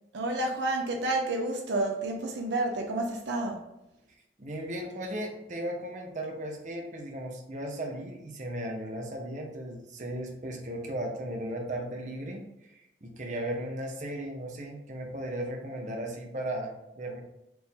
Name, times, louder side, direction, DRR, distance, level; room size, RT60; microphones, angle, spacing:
voice 1, 0.1-3.7, right 2 dB, 80° right, 0.6 m, -30 dB
voice 2, 4.4-17.2, right 1 dB, 45° right, 0.8 m, -36 dB
4.5 x 2.7 x 3.6 m
head